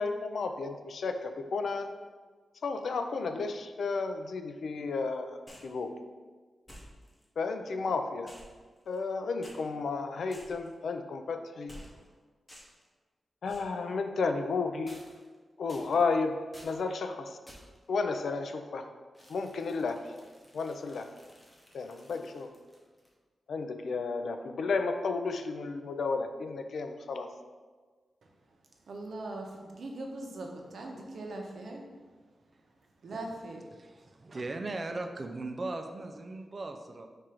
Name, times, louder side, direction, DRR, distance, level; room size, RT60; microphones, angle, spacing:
voice 1, 0.0-1.9 2.6-6.0 7.4-8.3 8.9-11.8 13.4-15.0 15.6-17.4 17.9-18.9 19.3-20.1 20.5-21.1 21.7-22.5 23.5-27.3, left 4 dB, 70° left, 7 dB, 0.3 m, -32 dB
sound 1, 5.5-5.8 6.7-7.2 8.3-9.1 9.4-9.6 10.3-10.7 11.7-12.1 12.5-12.9 13.5-13.8 14.9-15.3 15.7-16.1 16.5-16.8 17.5-17.8 19.1-23.1, equal, 15° left, 0.7 m, -53 dB
voice 2, 28.2-28.6 28.8-31.9 32.6-32.7 33.0-34.1, right 2 dB, 65° right, 1 dB, 0.7 m, -41 dB
voice 3, 34.0-37.1, right 2 dB, 30° right, 5 dB, 0.4 m, -38 dB
4.3 x 2.5 x 4.8 m, 1.4 s
wide cardioid pair, 155°, 0 cm